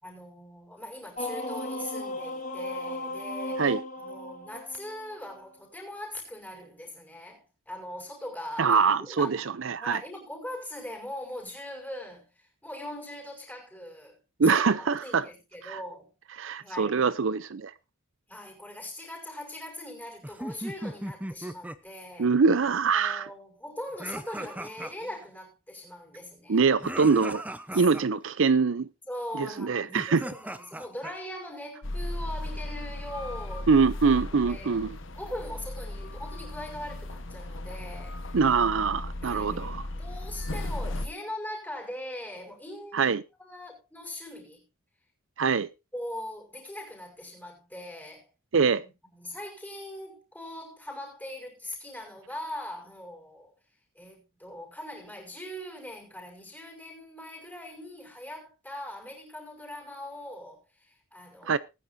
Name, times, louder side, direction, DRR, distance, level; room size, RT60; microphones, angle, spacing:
voice 1, 0.0-3.7 3.9-9.3 9.8-16.1 16.6-17.0 18.3-22.3 22.9-26.6 29.1-34.8 35.2-38.2 39.2-43.1 43.4-44.6 45.9-48.3 48.8-53.5 53.9-61.6, left 1 dB, 10° left, 5.6 m, -41 dB
sound 1, 1.2-5.4, left 1 dB, 40° left, 1.6 m, -35 dB
voice 2, 8.6-10.0 14.4-15.3 15.7-15.8 16.4-17.7 22.2-23.3 26.5-27.4 27.7-28.9 29.4-30.2 33.7-35.0 38.3-39.8 42.9-43.2 45.4-45.7 48.5-48.8 61.5-61.6, right 5 dB, 65° right, 0.5 m, -24 dB
sound 2, 20.2-21.8 24.0-25.2 26.8-28.0 29.9-31.1, right 1 dB, 5° right, 0.8 m, -38 dB
sound 3, 31.8-41.1, left 1 dB, 65° left, 1.2 m, -36 dB
19.5 x 10.0 x 2.7 m
head